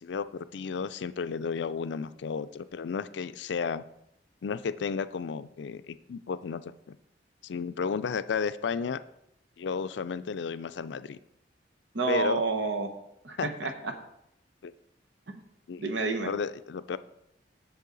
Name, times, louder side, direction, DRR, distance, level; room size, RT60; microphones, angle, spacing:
voice 1, 0.0-3.8 4.4-7.0 7.4-9.0 9.6-11.2 12.1-12.4 13.4-13.5 14.6-14.7 15.7-15.8 16.2-17.0, left 5 dB, 75° left, 13 dB, 0.4 m, -33 dB
voice 2, 11.9-12.9 13.2-13.9 15.3-15.4 15.8-16.3, right 3 dB, 90° right, 5 dB, 1.0 m, -29 dB
8.2 x 6.4 x 3.9 m, 0.79 s
head